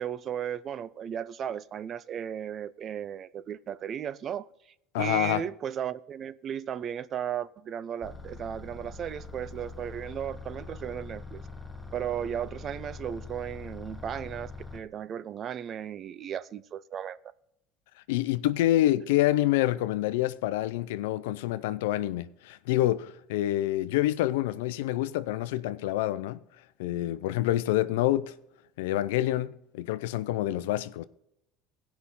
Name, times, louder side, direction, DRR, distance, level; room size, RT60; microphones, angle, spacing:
voice 1, 0.0-4.5 5.0-11.4 11.9-17.2, right 9 dB, 45° right, 0.6 m, -35 dB
voice 2, 4.9-5.4 18.1-26.4 26.8-28.3 28.8-31.0, left 14 dB, 85° left, 0.5 m, -27 dB
sound 1, 8.0-14.8, left 3 dB, ahead, 1.2 m, -43 dB
16.5 x 5.8 x 4.1 m
supercardioid pair, 90°, 0 cm